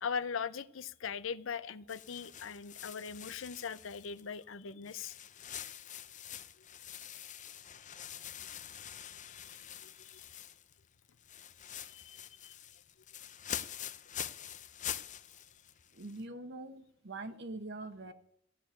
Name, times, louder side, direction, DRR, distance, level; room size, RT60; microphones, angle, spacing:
voice 1, 0.0-5.1 10.1-10.2 11.9-12.5, left 6 dB, 80° left, 16 dB, 0.6 m, -40 dB
sound 1, 1.9-4.4 4.8-10.8 11.1-16.2, left 10 dB, 40° left, 0.6 m, -45 dB
voice 2, 15.9-18.1, right 2 dB, 60° right, 8 dB, 1.1 m, -43 dB
16.0 x 6.7 x 8.9 m, 0.73 s
head